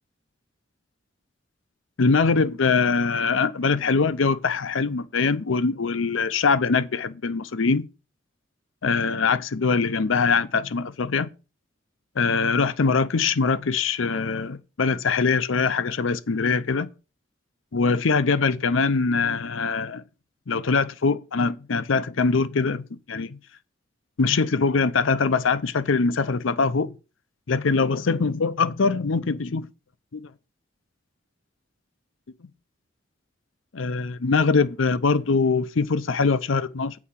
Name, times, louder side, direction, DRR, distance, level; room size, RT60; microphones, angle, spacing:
voice 1, 2.0-7.8 8.8-11.3 12.2-16.9 17.7-20.0 20.5-23.4 24.2-27.0 27.5-29.7 30.1-30.3 33.7-37.0, left 4 dB, 90° left, 0.6 m, -23 dB
8.4 x 4.8 x 5.7 m
head